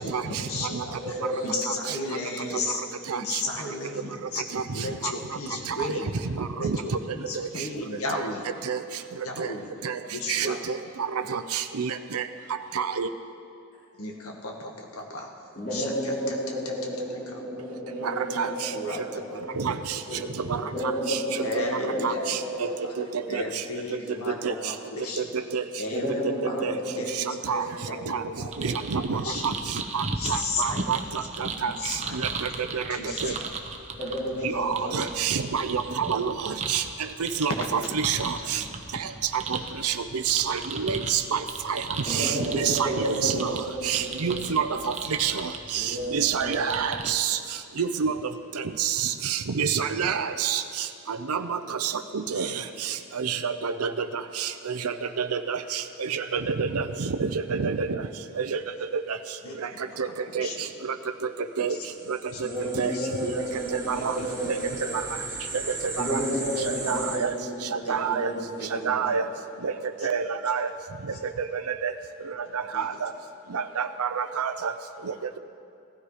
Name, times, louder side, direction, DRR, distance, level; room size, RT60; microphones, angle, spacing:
voice 1, 0.0-2.8 3.1-4.4 4.7-6.2 6.6-8.5 9.2-9.7 10.1-10.6 13.9-16.7 17.3-17.4 18.7-19.6 20.3-20.4 20.7-20.9 21.4-22.9 23.3-25.4 25.8-27.1 27.6-28.7 29.1-29.6 30.1-31.1 31.6-32.4 32.9-33.5 34.4-34.5 37.4-37.6 37.8-38.0 38.4-38.5 49.7-50.1 52.4-52.6 59.4-60.7 61.6-61.9 62.3-62.5 62.8-63.4 64.0-64.1 66.3-66.4 66.8-67.0 67.9-68.0 68.6-69.2 70.1-70.2 72.4-72.9, left 2 dB, 80° left, 1 dB, 1.8 m, -35 dB
voice 2, 0.9-1.5 2.1-2.7 15.5-20.2 20.7-23.7 24.0-24.2 25.9-28.3 28.6-28.7 34.0-35.5 38.5-38.6 42.0-44.8 45.7-46.6 62.4-65.2 66.0-69.2, equal, 40° left, -11 dB, 3.4 m, -33 dB
voice 3, 6.4-6.8 7.4-7.5 8.7-8.8 9.4-9.5 9.8-10.0 10.3-10.8 11.3-12.2 12.7-13.1 18.0-18.5 19.6-19.7 20.5-20.6 21.1-21.2 22.0-22.7 23.0-23.1 23.3-23.4 24.4-24.5 25.5-25.6 26.6-26.7 27.5-27.6 28.1-28.2 28.6-29.5 29.9-32.3 32.7-32.8 33.2-33.3 34.4-36.8 37.4-38.6 39.8-39.9 40.3-41.4 41.7-41.8 42.1-43.5 43.8-44.9 45.2-47.4 47.8-48.1 48.8-50.6 51.1-52.5 52.8-53.9 54.4-58.0 58.4-58.6 58.9-59.0 60.3-60.5 61.6-61.7 62.1-62.2 62.8-62.9 63.2-63.3 63.9-64.2 64.5-64.6 66.1-66.2 66.6-67.3 67.7-68.3 68.8-69.2 69.6-69.7 70.0-70.7 71.5-71.9 72.5-73.1 73.5-74.7, right 6 dB, 90° right, 9 dB, 0.6 m, -28 dB
sound 1, 28.5-47.1, right 4 dB, 30° right, 0.9 m, -37 dB
sound 2, 61.8-67.2, right 3 dB, 15° right, 2.6 m, -37 dB
17.5 x 13.0 x 5.0 m, 2.6 s
head